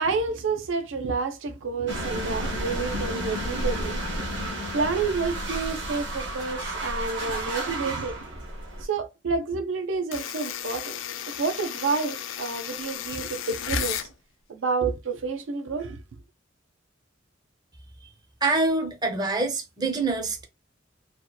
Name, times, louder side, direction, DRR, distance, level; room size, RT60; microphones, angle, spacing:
voice 1, 0.0-4.0 4.7-8.1 8.8-11.0 11.3-14.1 14.5-16.0, right 4 dB, 85° right, 0.5 m, -29 dB
sound 1, 1.9-8.8, right 1 dB, 65° right, 0.9 m, -31 dB
sound 2, 10.1-14.1, left 10 dB, 80° left, 0.4 m, -34 dB
voice 2, 18.4-20.4, right 3 dB, 20° right, 0.5 m, -25 dB
2.8 x 2.1 x 2.2 m
head